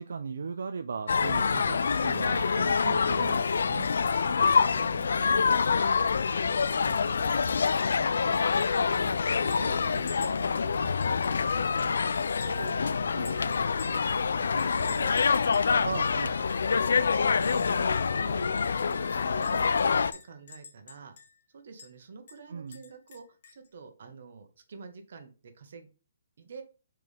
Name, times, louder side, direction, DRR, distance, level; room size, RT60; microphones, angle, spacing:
voice 1, 0.0-3.9 15.8-16.4 22.5-22.8, right 5 dB, 75° right, 8 dB, 0.6 m, -37 dB
sound 1, 1.1-20.1, left 5 dB, 75° left, 0.4 m, -26 dB
voice 2, 4.1-7.5 7.8-9.1 9.4-15.1 15.7-16.0 17.0-18.5 18.7-21.1 21.5-25.9 26.4-26.6, right 4 dB, 55° right, 7 dB, 1.4 m, -47 dB
Chink clink, 8.3-8.7 8.9-9.0 9.5-12.0 12.4-14.1 14.6-15.7 16.1-16.2 16.5-17.2 17.5-17.6 17.9-18.0 18.6-21.5 21.8-21.9 22.3-23.7, left 5 dB, 45° left, 1.5 m, -49 dB
6.2 x 4.6 x 3.5 m, 0.34 s
hypercardioid pair, 175°, 0 cm